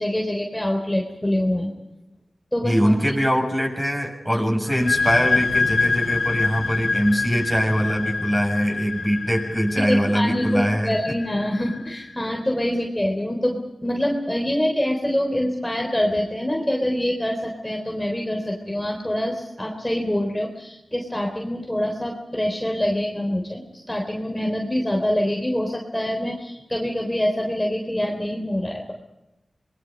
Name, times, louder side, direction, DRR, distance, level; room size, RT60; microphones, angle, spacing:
voice 1, 0.0-1.7 2.5-2.7 9.9-23.6 23.9-28.9, left 1 dB, 15° left, 1 dB, 3.6 m, -25 dB
voice 2, 2.6-10.9, equal, 15° right, 0 dB, 7.3 m, -22 dB
sound 1, 4.6-12.1, left 4 dB, 75° left, 1.8 m, -26 dB
26.5 x 21.0 x 5.3 m, 0.92 s
cardioid pair, 40°, 0 cm